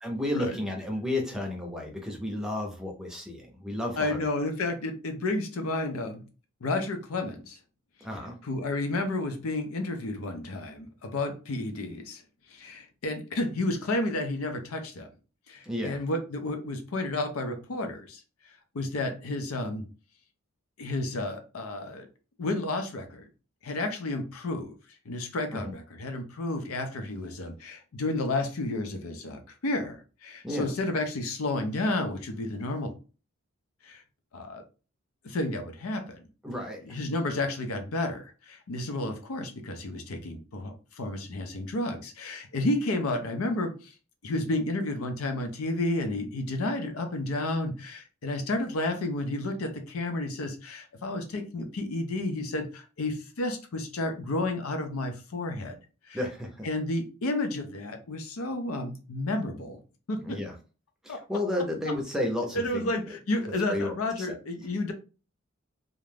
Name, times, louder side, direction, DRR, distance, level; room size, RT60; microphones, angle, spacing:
voice 1, 0.0-4.2 8.0-8.4 15.6-16.0 25.5-25.7 30.4-30.7 36.4-36.8 56.1-56.7 60.2-60.5 61.0-63.2 63.7-64.3, left 1 dB, 5° right, 0.5 m, -32 dB
voice 2, 4.0-6.3 6.6-7.6 8.4-12.2 12.5-15.1 15.5-18.2 18.7-19.9 20.8-22.1 22.4-23.3 23.6-24.7 25.1-33.0 33.8-34.0 34.3-34.6 35.2-36.2 36.8-43.9 44.2-55.8 56.1-56.2 56.6-59.8 60.1-60.4 61.1-61.2 62.5-64.9, left 2 dB, 85° left, 0.5 m, -31 dB
2.4 x 2.1 x 3.2 m
head